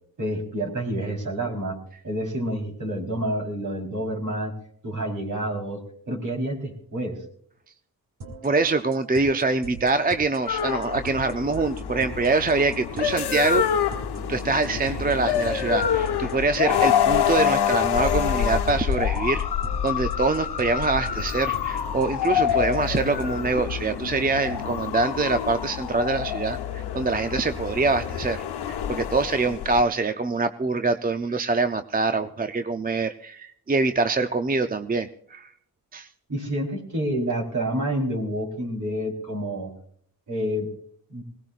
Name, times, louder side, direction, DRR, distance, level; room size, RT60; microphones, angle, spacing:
voice 1, 0.2-1.8 2.0-4.5 4.8-7.2 36.3-39.7 40.3-40.7 41.1-41.2, right 1 dB, 50° right, 1 dB, 4.1 m, -28 dB
sound 1, 8.2-23.4, right 2 dB, 85° right, 3.1 m, -42 dB
voice 2, 8.4-13.7 14.3-19.4 19.8-35.5 35.9-36.1, right 3 dB, 25° right, 8 dB, 0.6 m, -24 dB
sound 2, 10.5-29.8, left 9 dB, 85° left, 1.0 m, -26 dB
21.0 x 18.0 x 2.5 m, 0.62 s
cardioid pair, 100°, 38 cm